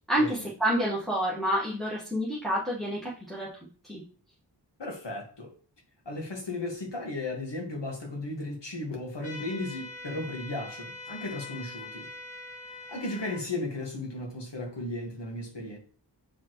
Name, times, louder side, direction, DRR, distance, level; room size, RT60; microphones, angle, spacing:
voice 1, 0.1-3.5 3.8-4.0, equal, ahead, -6 dB, 1.4 m, -28 dB
voice 2, 4.8-5.5 6.1-12.1 12.9-15.8, left 2 dB, 80° left, 1 dB, 1.6 m, -35 dB
sound 1, 9.2-13.4, left 3 dB, 20° left, 1.8 m, -43 dB
6.9 x 4.8 x 3.0 m, 0.42 s
wide cardioid pair, 60°, 42 cm